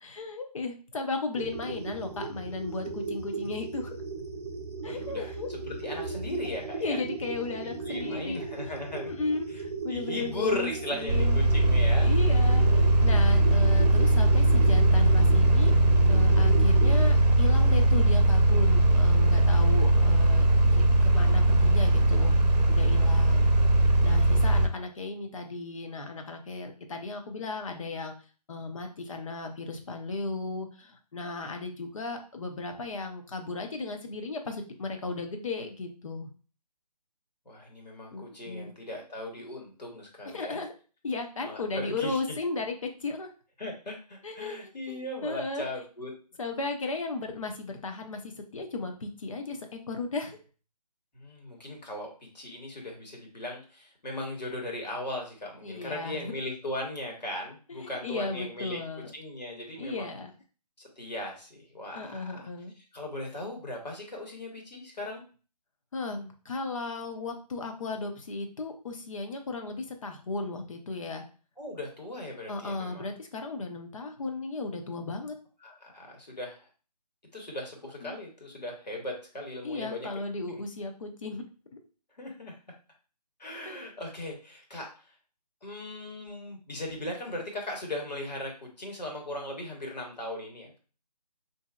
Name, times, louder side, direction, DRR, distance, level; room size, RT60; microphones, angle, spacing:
voice 1, 0.0-3.9 4.8-5.5 6.8-8.7 9.0-11.4 12.0-15.7 16.1-22.3 22.7-23.5 24.0-28.1 28.5-36.3 38.1-38.7 40.2-40.7 41.0-43.3 44.2-44.6 44.9-45.7 46.4-50.4 55.6-56.3 57.7-59.1 59.8-60.3 61.9-62.7 65.9-71.2 72.5-75.3 78.0-78.2 79.6-81.4 83.6-83.9, left 3 dB, 55° left, 5 dB, 0.7 m, -35 dB
sound 1, 1.3-17.9, right 4 dB, 40° right, 0.6 m, -37 dB
voice 2, 4.8-5.3 5.6-7.0 7.6-9.1 9.9-12.1 37.4-40.6 41.4-42.2 43.6-46.1 51.1-58.8 59.1-60.2 60.8-62.5 62.9-65.2 71.6-73.1 75.6-76.6 77.3-80.1 80.5-80.6 82.2-82.5 83.4-84.9 85.6-90.8, left 1 dB, 90° left, 0 dB, 1.5 m, -38 dB
sound 2, 11.1-24.7, right 1 dB, 80° right, 0.6 m, -20 dB
3.7 x 2.7 x 2.3 m, 0.37 s
figure-of-eight pair, 160°, 21 cm